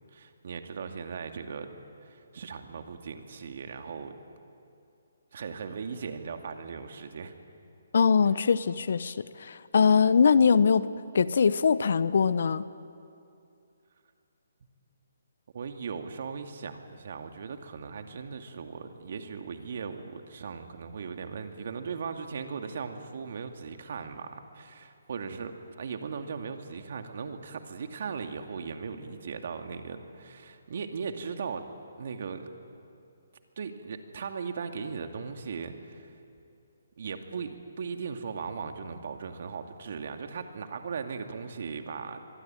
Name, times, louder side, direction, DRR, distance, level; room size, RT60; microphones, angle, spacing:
voice 1, 0.1-1.7 2.0-4.2 5.3-7.3 15.5-31.7 32.0-32.5 33.6-36.2 37.0-42.2, right 5 dB, 60° right, 5 dB, 2.4 m, -38 dB
voice 2, 7.9-10.9 11.1-12.7, left 6 dB, 65° left, 16 dB, 1.0 m, -22 dB
24.5 x 22.0 x 9.1 m, 2.6 s
figure-of-eight pair, 140°, 0 cm